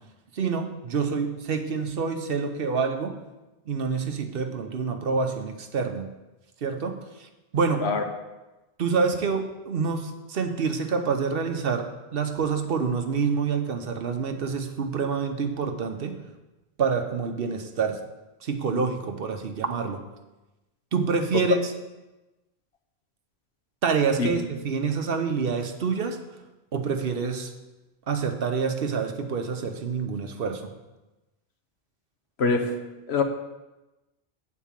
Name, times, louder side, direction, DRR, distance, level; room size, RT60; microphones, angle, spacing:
voice 1, 0.3-3.1 3.7-6.1 6.6-7.9 8.8-16.2 16.8-18.0 18.4-20.0 20.9-21.7 23.8-26.2 26.7-27.5 28.1-30.7, right 5 dB, 65° right, 6 dB, 1.0 m, -27 dB
voice 2, 32.4-32.8 33.1-33.2, left 4 dB, 85° left, 5 dB, 1.2 m, -23 dB
8.4 x 4.5 x 7.3 m, 1.0 s
omnidirectional pair, 1.1 m